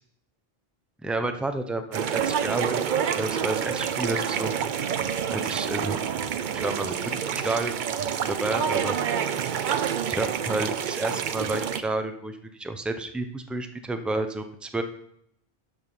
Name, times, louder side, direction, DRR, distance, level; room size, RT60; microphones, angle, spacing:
voice 1, 1.0-4.5 4.8-5.0 5.3-6.0 6.5-7.8 8.3-9.0 10.1-14.8, right 2 dB, ahead, 7 dB, 0.6 m, -31 dB
sound 1, 1.9-11.8, right 8 dB, 55° right, 0.7 m, -28 dB
12.5 x 5.2 x 5.5 m, 0.73 s
omnidirectional pair, 1.0 m